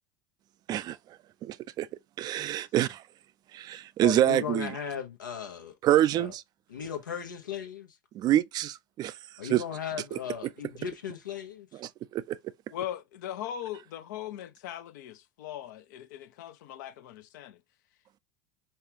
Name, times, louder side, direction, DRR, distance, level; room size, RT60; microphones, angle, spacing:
voice 1, 1.4-1.9 2.2-2.9 3.5-4.7 5.8-6.4 8.1-9.1 9.5-9.6 10.1-10.2 11.8-12.4, right 12 dB, 40° right, 0.4 m, -26 dB
voice 2, 4.0-5.8 6.2-6.3 6.7-8.0 9.4-11.8, left 8 dB, 85° left, 1.0 m, -37 dB
voice 3, 12.7-17.6, left 11 dB, 70° left, 0.6 m, -39 dB
5.5 x 2.3 x 2.8 m
hypercardioid pair, 80°, 10 cm